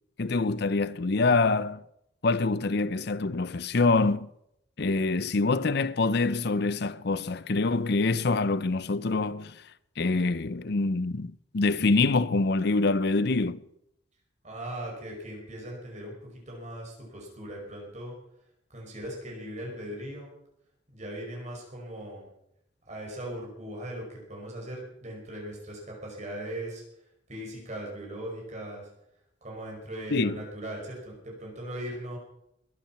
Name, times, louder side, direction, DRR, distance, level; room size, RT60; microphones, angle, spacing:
voice 1, 0.2-1.8 2.2-4.3 4.8-9.6 10.0-13.6 30.1-30.4, left 3 dB, 60° left, 0.6 m, -25 dB
voice 2, 14.4-18.1 18.7-20.3 20.9-22.3 22.9-26.8 27.3-28.9 29.4-32.2, right 1 dB, 40° right, 5.2 m, -39 dB
21.5 x 8.9 x 5.8 m
head